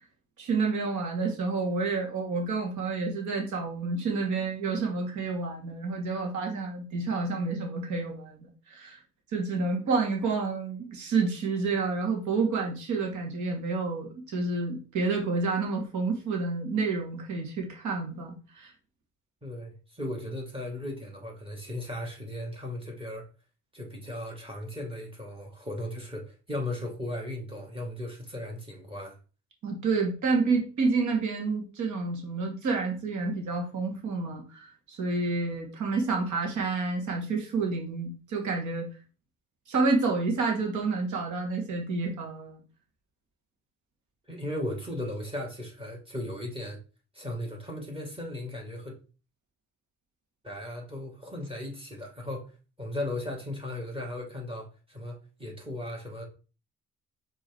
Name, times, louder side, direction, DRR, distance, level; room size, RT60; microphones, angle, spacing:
voice 1, 0.4-9.0 9.3-18.7 29.6-38.9 39.7-42.6, right 4 dB, 75° right, 2.4 m, -29 dB
voice 2, 19.4-23.3 23.7-29.2 44.3-46.8 47.1-48.9 50.4-52.5 52.8-56.2, left 1 dB, 20° right, 1.9 m, -36 dB
5.0 x 3.9 x 4.7 m
cardioid pair, 90°, 30 cm